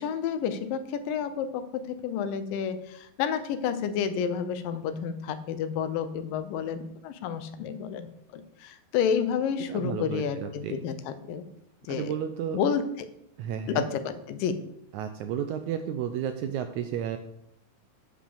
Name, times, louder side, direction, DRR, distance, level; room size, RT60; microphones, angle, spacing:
voice 1, 0.0-11.5 11.8-12.1 12.4-13.1 13.7-14.5, left 7 dB, 80° left, 10 dB, 2.5 m, -30 dB
voice 2, 9.7-10.8 11.9-12.6 13.4-13.9 14.9-17.2, right 9 dB, 85° right, 8 dB, 1.7 m, -32 dB
9.0 x 5.2 x 6.9 m, 0.73 s
omnidirectional pair, 3.9 m